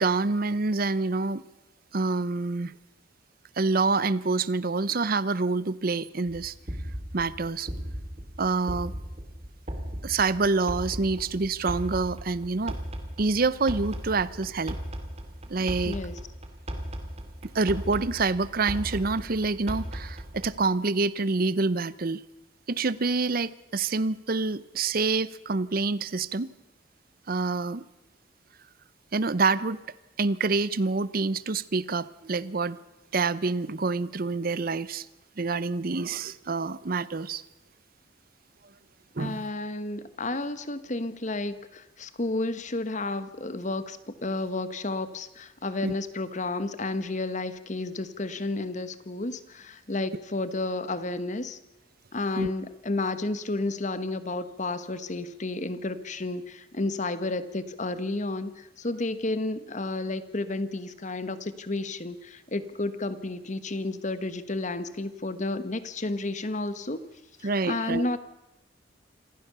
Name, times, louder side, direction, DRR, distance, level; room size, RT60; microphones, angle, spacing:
voice 1, 0.0-1.4 1.9-2.7 3.6-6.5 7.1-7.7 8.4-8.9 10.0-12.8 13.2-14.8 15.5-16.0 17.4-22.2 22.7-26.5 27.3-27.8 29.1-29.8 30.2-32.8 33.1-35.1 35.4-37.4 39.2-39.4 45.8-45.9 52.4-52.5 67.4-68.1, right 3 dB, 50° right, 18 dB, 0.7 m, -27 dB
sound 1, 6.3-20.6, equal, 35° right, 2.4 m, -37 dB
voice 2, 15.8-16.2 39.2-51.6 52.1-67.0 67.4-68.2, left 2 dB, 40° left, 12 dB, 1.2 m, -31 dB
26.5 x 15.0 x 6.9 m, 0.97 s
head